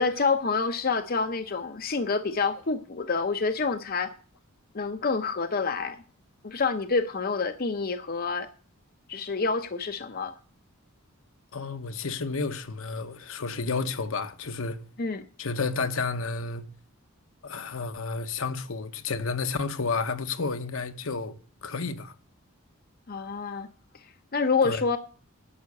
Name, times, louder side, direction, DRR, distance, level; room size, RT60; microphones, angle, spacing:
voice 1, 0.0-4.1 4.7-6.0 6.4-8.5 9.1-10.3 15.0-15.2 23.1-23.7 24.0-25.0, left 4 dB, 40° left, 0.7 m, -27 dB
voice 2, 11.5-14.8 15.4-16.6 17.4-22.1 24.6-24.8, left 4 dB, 65° left, 1.0 m, -31 dB
11.5 x 5.7 x 8.4 m
head